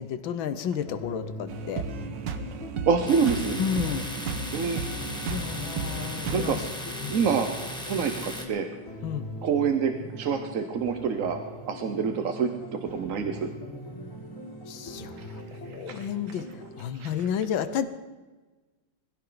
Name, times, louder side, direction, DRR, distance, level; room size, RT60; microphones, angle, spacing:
voice 1, 0.0-1.8 3.6-4.1 5.3-6.6 7.0-7.1 9.0-9.3 14.7-15.1 15.7-16.5 16.8-17.9, left 8 dB, 85° left, 11 dB, 1.7 m, -31 dB
sound 1, 0.9-16.9, equal, 45° left, 5.3 m, -41 dB
sound 2, 1.5-6.7, right 5 dB, 75° right, 1.6 m, -35 dB
voice 2, 2.9-3.6 4.5-4.8 6.3-6.6 7.1-7.5 7.9-8.7 9.4-11.4 11.7-13.5 15.2-15.3 15.9-16.1 16.9-17.1, right 6 dB, 55° right, 6 dB, 1.1 m, -26 dB
Domestic sounds home sounds, 3.1-8.5, left 1 dB, 5° left, 1.4 m, -37 dB
20.5 x 15.5 x 4.0 m, 1.2 s
omnidirectional pair, 2.1 m